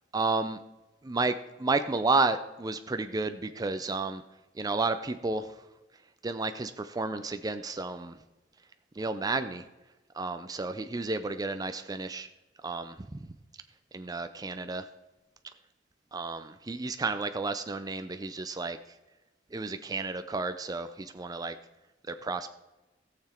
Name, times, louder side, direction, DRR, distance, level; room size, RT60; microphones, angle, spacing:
voice 1, 0.1-0.6 1.0-1.3 1.6-4.2 4.6-5.5 6.2-8.2 9.0-9.6 10.2-12.3 12.6-12.9 13.9-14.8 16.1-18.8 19.5-21.5 22.1-22.5, right 3 dB, 20° right, 9 dB, 0.4 m, -31 dB
17.5 x 6.9 x 4.4 m, 1.1 s
head